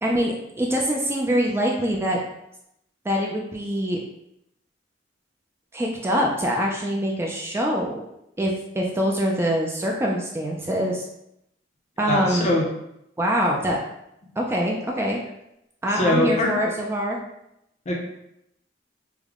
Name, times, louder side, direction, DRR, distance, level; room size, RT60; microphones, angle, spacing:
voice 1, 0.0-2.2 3.0-4.0 5.7-8.1 8.4-11.0 12.0-12.5 13.2-13.8 14.4-15.2 15.8-17.2, equal, 15° right, -1 dB, 0.3 m, -24 dB
voice 2, 12.0-12.6 15.9-16.5 17.9-18.0, left 1 dB, 40° left, -1 dB, 0.7 m, -22 dB
3.4 x 2.1 x 3.5 m, 0.81 s
head